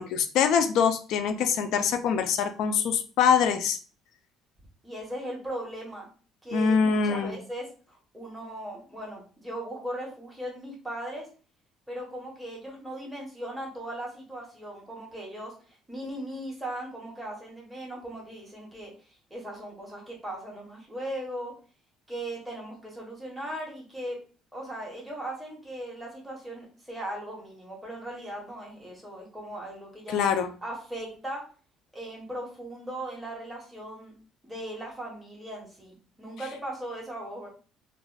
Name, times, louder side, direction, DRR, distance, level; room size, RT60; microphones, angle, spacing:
voice 1, 0.0-3.8 6.5-7.4 30.1-30.5, left 6 dB, 70° left, 8 dB, 0.4 m, -24 dB
voice 2, 4.8-6.1 6.4-11.3 11.9-18.9 19.3-21.5 22.1-24.2 24.5-30.2 30.6-31.4 31.9-34.1 34.4-37.5, right 1 dB, 5° right, -3 dB, 1.2 m, -38 dB
3.2 x 2.5 x 2.3 m, 0.38 s
cardioid pair, 125°, 0 cm